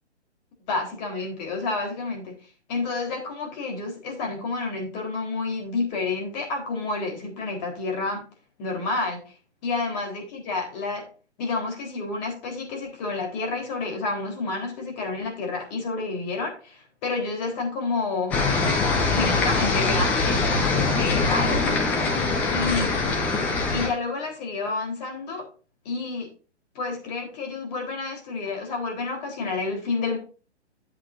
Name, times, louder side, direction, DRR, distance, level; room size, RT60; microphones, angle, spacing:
voice 1, 0.7-2.3 2.7-8.2 8.6-9.3 9.6-11.0 11.4-18.4 19.1-21.7 22.5-22.9 23.7-25.5 25.9-26.3 26.8-30.2, left 3 dB, 35° left, 2 dB, 3.8 m, -29 dB
sound 1, 18.3-23.9, left 3 dB, 5° left, 0.4 m, -23 dB
12.0 x 8.0 x 2.6 m, 0.37 s
figure-of-eight pair, 135°, 35 cm